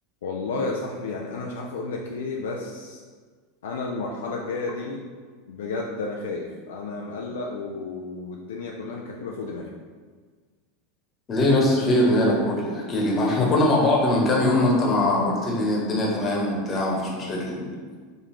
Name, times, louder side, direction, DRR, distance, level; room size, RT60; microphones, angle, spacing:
voice 1, 0.2-3.0 3.6-5.0 5.5-9.7, left 3 dB, 70° left, -1 dB, 0.3 m, -32 dB
voice 2, 11.3-18.0, left 1 dB, 30° left, -3 dB, 1.0 m, -22 dB
4.9 x 2.4 x 3.0 m, 1.5 s
figure-of-eight pair, 80°, 0 cm